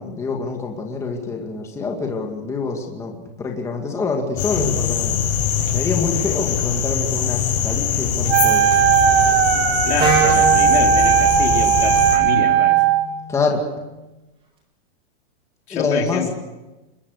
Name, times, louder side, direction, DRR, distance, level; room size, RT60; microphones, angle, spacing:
voice 1, 0.0-5.2 5.7-8.7 13.3-13.6 15.7-16.3, left 4 dB, 10° left, 1 dB, 2.2 m, -26 dB
sound 1, 4.4-12.2, left 8 dB, 40° left, 7.4 m, -22 dB
Wind instrument woodwind instrument, 8.3-13.1, right 10 dB, 60° right, 2.3 m, -17 dB
voice 2, 9.8-12.8 15.7-16.3, left 8 dB, 90° left, 3 dB, 4.0 m, -26 dB
Wind instrument woodwind instrument 2, 10.0-13.9, right 2 dB, 15° right, 4.2 m, -28 dB
26.5 x 22.0 x 6.6 m, 1.1 s
supercardioid pair, 170°, 32 cm